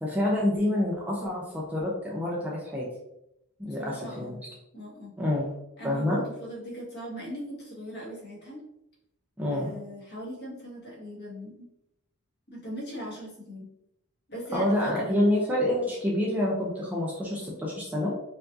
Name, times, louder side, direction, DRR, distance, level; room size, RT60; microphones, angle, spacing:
voice 1, 0.0-2.9 3.6-4.4 5.2-5.5 5.8-6.2 9.4-9.7 14.5-18.1, left 1 dB, 5° right, -4 dB, 0.5 m, -27 dB
voice 2, 3.6-4.4 4.7-5.1 5.8-8.6 9.5-11.7 12.5-13.7 14.3-15.2, equal, 45° left, -5 dB, 1.5 m, -39 dB
4.5 x 2.5 x 2.6 m, 0.84 s
head